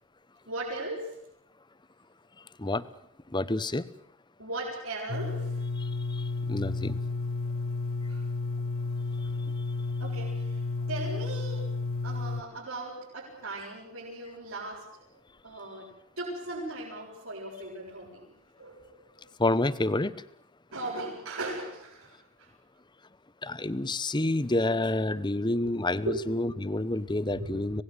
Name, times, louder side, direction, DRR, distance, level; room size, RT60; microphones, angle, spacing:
voice 1, 0.5-1.2 4.4-5.6 8.1-8.2 9.2-9.3 10.0-11.7 12.0-15.1 15.4-15.9 16.2-18.3 18.6-19.1 20.7-22.5 25.3-25.8 26.0-26.2 26.5-26.6 27.3-27.6, right 2 dB, 70° right, -6 dB, 7.8 m, -38 dB
voice 2, 3.3-3.9 5.8-7.0 19.4-20.2 23.4-27.8, left 2 dB, 20° left, 14 dB, 0.9 m, -29 dB
sound 1, 5.1-12.4, left 3 dB, 65° left, 1.5 m, -32 dB
26.5 x 19.0 x 8.2 m, 0.74 s
head